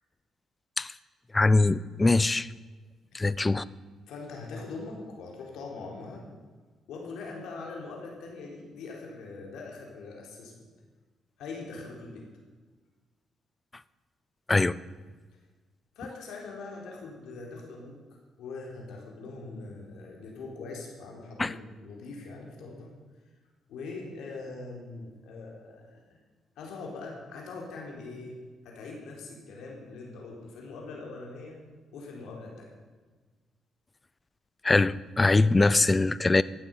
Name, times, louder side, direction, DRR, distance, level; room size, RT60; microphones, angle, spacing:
voice 1, 1.3-2.5 3.1-3.7 14.5-14.8 21.4-21.5 34.6-36.4, left 3 dB, 20° left, 18 dB, 0.5 m, -22 dB
voice 2, 4.1-6.3 6.9-10.7 11.4-12.3 16.0-18.0 18.4-22.9 23.7-26.1 26.6-28.4 28.6-31.6 31.9-32.7, left 3 dB, 80° left, -1 dB, 4.0 m, -42 dB
15.5 x 11.5 x 5.6 m, 1.4 s
cardioid pair, 90°, 0 cm